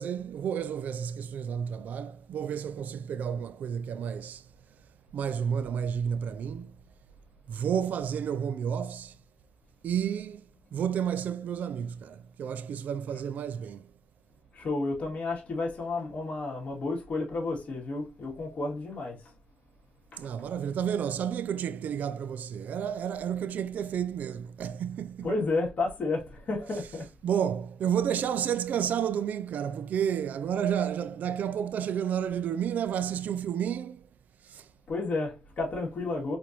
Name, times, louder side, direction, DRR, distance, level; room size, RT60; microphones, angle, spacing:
voice 1, 0.0-4.9 5.1-6.8 7.5-9.2 9.8-13.9 20.2-25.4 26.7-34.1 34.4-34.7, right 8 dB, 70° right, 0.4 m, -31 dB
voice 2, 14.5-19.3 20.1-20.3 25.2-27.1 34.9-36.4, left 3 dB, 50° left, 2.4 m, -32 dB
4.3 x 3.9 x 2.9 m
cardioid pair, 90°, 3 cm